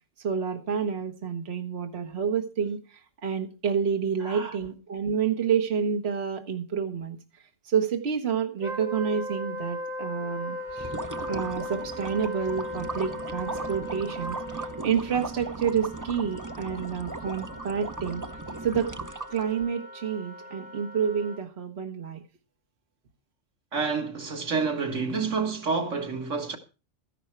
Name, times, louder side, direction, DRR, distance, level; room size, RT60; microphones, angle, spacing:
voice 1, 0.2-7.2 7.6-10.9 11.3-18.2 18.6-18.9 19.3-22.2, right 7 dB, 55° right, 1.5 m, -29 dB
voice 2, 4.2-4.6 23.7-26.6, right 4 dB, 75° right, 2.0 m, -29 dB
Wind instrument woodwind instrument, 8.6-14.9, left 1 dB, 45° left, 4.4 m, -36 dB
Wind instrument woodwind instrument 2, 10.2-21.4, equal, 5° right, 5.5 m, -47 dB
sound 1, 10.7-19.6, right 3 dB, 20° right, 0.5 m, -38 dB
13.5 x 11.0 x 4.5 m
omnidirectional pair, 1.3 m